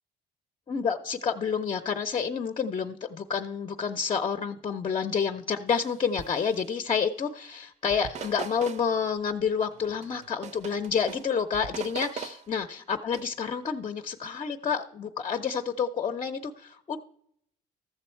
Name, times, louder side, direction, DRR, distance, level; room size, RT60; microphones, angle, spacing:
voice 1, 0.7-17.0, left 6 dB, 30° left, 7 dB, 0.6 m, -29 dB
sound 1, 5.7-5.9 6.2-6.8 7.9-8.9 9.7-11.3 11.5-12.4 13.1-13.2, right 6 dB, 45° right, 0.6 m, -41 dB
13.5 x 6.9 x 4.4 m, 0.71 s
cardioid pair, 110°, 17 cm